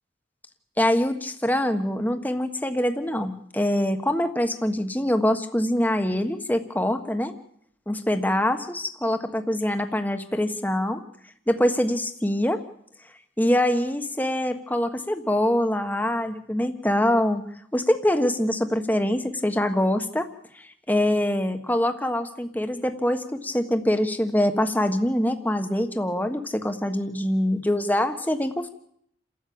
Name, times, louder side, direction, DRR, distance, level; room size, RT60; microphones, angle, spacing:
voice 1, 0.8-7.3 7.9-11.0 11.5-12.6 13.4-17.4 17.7-20.3 20.5-28.7, left 1 dB, 10° left, 7 dB, 1.4 m, -24 dB
29.0 x 13.5 x 8.8 m, 0.71 s
head